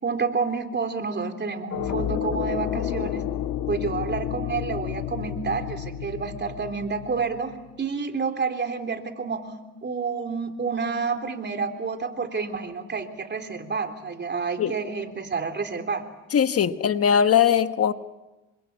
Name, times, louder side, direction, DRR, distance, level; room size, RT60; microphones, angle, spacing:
voice 1, 0.0-3.2 3.7-16.1, right 5 dB, 35° right, 6 dB, 3.5 m, -29 dB
sound 1, 1.7-7.6, left 10 dB, 85° left, 1.9 m, -30 dB
voice 2, 16.3-17.9, left 8 dB, 50° left, 10 dB, 1.2 m, -20 dB
28.5 x 24.5 x 8.4 m, 1.1 s
cardioid pair, 90°, 30 cm